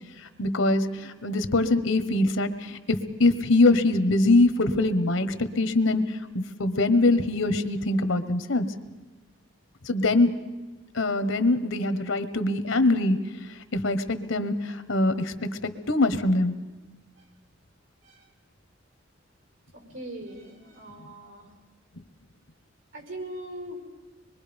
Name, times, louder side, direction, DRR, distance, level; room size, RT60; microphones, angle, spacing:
voice 1, 0.2-8.6 9.8-10.3 10.9-13.2 13.7-16.5, left 2 dB, 80° left, 11 dB, 1.3 m, -23 dB
voice 2, 19.7-21.5 22.9-23.8, right 1 dB, 80° right, 3 dB, 5.7 m, -40 dB
25.5 x 22.5 x 5.3 m, 1.2 s
head